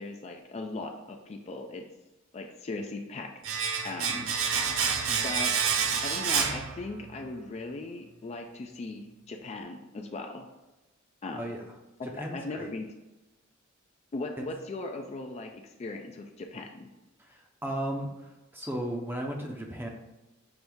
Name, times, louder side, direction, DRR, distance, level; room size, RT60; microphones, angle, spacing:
voice 1, 0.0-1.8 2.3-3.3 3.8-4.4 5.2-5.5 6.0-10.5 11.2-11.4 12.3-12.9 14.1-16.9, left 2 dB, 30° left, 3 dB, 0.3 m, -38 dB
Domestic sounds home sounds, 3.4-7.3 7.5-7.7, right 6 dB, 70° right, 0.5 m, -28 dB
voice 2, 11.3-11.7 12.0-12.7 14.4-14.5 17.2-19.9, right 1 dB, 10° right, 1 dB, 0.6 m, -36 dB
5.9 x 2.6 x 3.4 m, 1.1 s
head